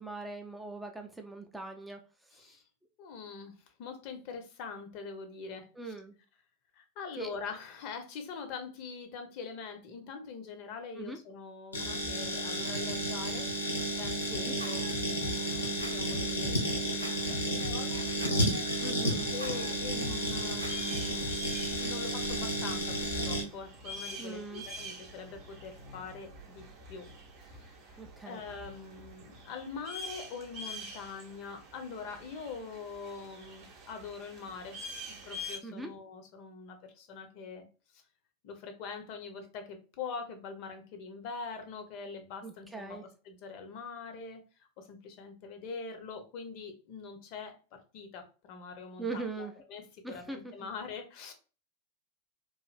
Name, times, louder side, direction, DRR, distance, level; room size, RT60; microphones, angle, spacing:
voice 1, 0.0-2.6 5.8-6.2 7.2-7.3 10.9-11.2 14.2-14.6 18.8-19.3 24.2-24.6 28.0-28.4 35.6-35.9 42.4-43.0 49.0-49.5 50.0-50.7, right 3 dB, 5° right, 3 dB, 0.3 m, -41 dB
voice 2, 2.3-2.6 3.0-5.7 6.7-18.8 19.3-21.3 21.6-27.1 27.4-28.0 28.2-34.8 35.3-37.7 37.9-38.0 38.4-43.0 43.3-51.3, left 5 dB, 45° left, 7 dB, 0.6 m, -44 dB
sound 1, 11.7-23.4, equal, 80° left, 0.8 m, -32 dB
Scratching (performance technique), 13.4-21.9, equal, 80° right, 0.4 m, -43 dB
sound 2, 19.2-35.6, equal, 40° right, 0.7 m, -46 dB
3.0 x 2.4 x 2.3 m, 0.36 s
figure-of-eight pair, 90°, 0 cm